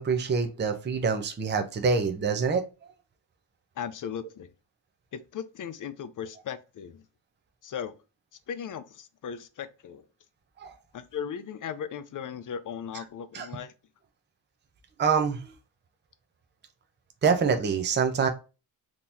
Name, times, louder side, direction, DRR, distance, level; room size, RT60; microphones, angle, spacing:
voice 1, 0.0-2.6 10.6-10.7 13.3-13.5 15.0-15.4 17.2-18.3, right 5 dB, 25° right, 0.6 m, -25 dB
voice 2, 3.8-4.5 5.1-7.0 7.6-7.9 8.5-10.1 10.9-13.7, left 8 dB, 45° left, 0.5 m, -37 dB
3.8 x 3.0 x 2.5 m
cardioid pair, 115°, 47 cm